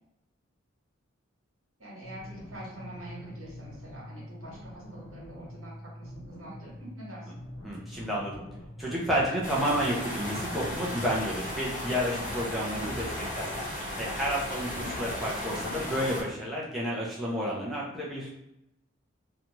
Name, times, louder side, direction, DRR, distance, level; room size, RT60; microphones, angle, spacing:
voice 1, 1.8-7.3 14.7-15.1, right 1 dB, 75° right, -4 dB, 1.2 m, -45 dB
sound 1, 2.0-11.0, equal, 80° left, 0.9 m, -45 dB
voice 2, 7.6-8.4 8.8-13.5 14.0-18.3, equal, ahead, -6 dB, 0.5 m, -31 dB
sound 2, 9.4-16.2, left 1 dB, 35° left, 0.8 m, -35 dB
2.6 x 2.3 x 2.9 m, 0.88 s
head